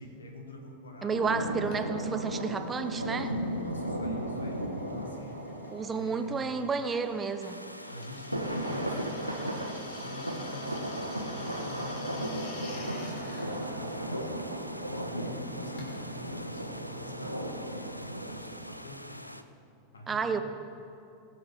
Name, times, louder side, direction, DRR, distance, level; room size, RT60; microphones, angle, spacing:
voice 1, 0.0-1.9 3.5-5.5 5.9-6.7 7.9-9.6 10.0-14.3 14.9-19.4 19.9-20.4, left 2 dB, 70° left, 2 dB, 2.0 m, -45 dB
voice 2, 1.0-3.4 5.7-7.6 20.1-20.4, right 5 dB, 15° right, 9 dB, 0.9 m, -31 dB
sound 1, 1.1-7.4 8.2-18.7, right 1 dB, 90° right, 1.4 m, -36 dB
Drill, 1.7-18.0, left 2 dB, 45° left, 2.8 m, -51 dB
sound 2, 7.4-19.4, equal, 90° left, 0.6 m, -46 dB
21.0 x 7.8 x 4.9 m, 2.6 s
figure-of-eight pair, 90°, 0 cm